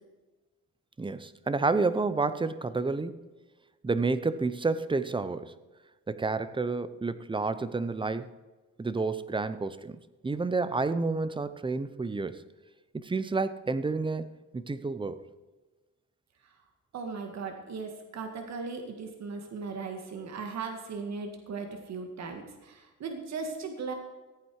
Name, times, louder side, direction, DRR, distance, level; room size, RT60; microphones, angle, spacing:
voice 1, 1.0-3.2 3.8-5.5 6.1-8.3 8.8-12.4 12.9-14.3 14.5-15.2, right 3 dB, 15° right, 14 dB, 0.8 m, -30 dB
voice 2, 16.9-23.9, right 4 dB, 60° right, 5 dB, 1.9 m, -38 dB
15.0 x 9.1 x 4.8 m, 1.2 s
cardioid pair, 90°, 30 cm